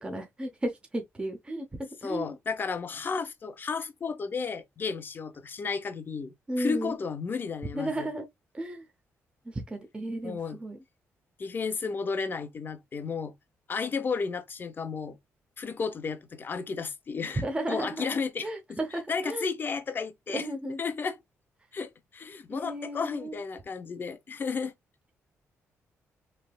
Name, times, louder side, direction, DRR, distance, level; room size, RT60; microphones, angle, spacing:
voice 1, 0.0-2.3 6.5-7.0 7.7-8.3 8.5-8.9 9.5-10.8 17.4-19.5 20.3-20.8 22.5-23.4, right 1 dB, 20° right, 0.7 m, -34 dB
voice 2, 2.0-8.1 10.2-10.6 11.4-13.3 13.7-15.2 15.6-18.8 19.1-20.5 20.8-21.2 21.7-24.7, left 5 dB, 40° left, 0.6 m, -33 dB
3.3 x 2.9 x 2.2 m
cardioid pair, 105°, 5 cm